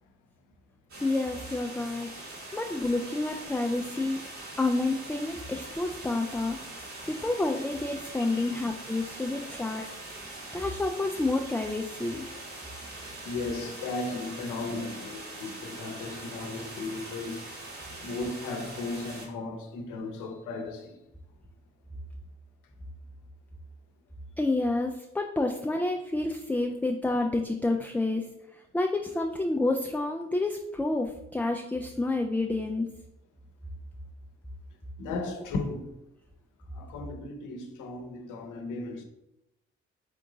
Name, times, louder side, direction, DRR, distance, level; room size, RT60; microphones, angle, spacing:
sound 1, 0.9-19.3, right 2 dB, 55° right, 1.7 m, -43 dB
voice 1, 1.0-2.1 2.5-4.2 4.6-6.6 7.1-9.9 10.5-12.3 24.4-28.3 28.5-32.9, left 2 dB, 5° left, 0.4 m, -29 dB
voice 2, 8.2-8.5 13.2-17.5 18.0-21.0 35.0-36.0 36.7-39.0, left 3 dB, 65° left, 0.8 m, -36 dB
3.7 x 3.5 x 3.8 m
hypercardioid pair, 45°, 33 cm